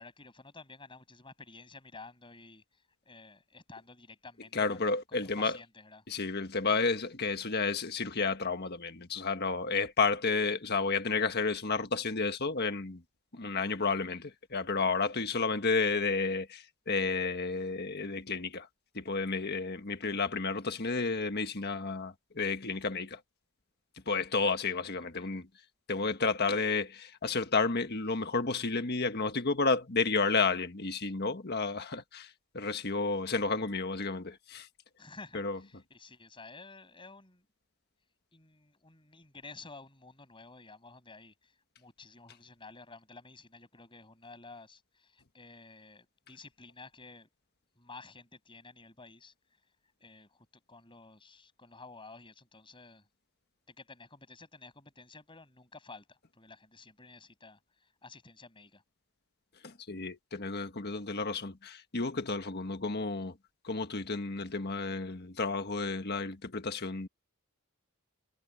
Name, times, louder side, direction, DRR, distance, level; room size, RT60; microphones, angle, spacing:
voice 1, 0.0-6.1 24.4-24.5 25.0-25.4 35.0-37.4 38.3-47.3 47.7-49.3 50.0-53.1 53.7-58.8, left 3 dB, 20° left, 6.7 m, -52 dB
voice 2, 4.5-5.6 6.1-13.0 13.3-18.7 18.9-23.2 24.1-25.4 25.9-34.7 35.3-35.6 59.6-63.3 63.6-67.1, left 4 dB, 45° left, 1.5 m, -31 dB
head